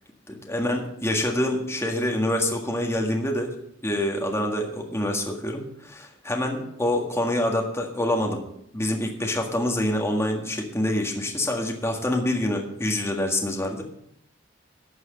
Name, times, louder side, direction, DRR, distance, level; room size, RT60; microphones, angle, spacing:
voice 1, 0.3-3.5 3.8-8.4 8.7-13.8, left 1 dB, 15° left, 1 dB, 1.7 m, -26 dB
12.0 x 6.3 x 7.7 m, 0.74 s
head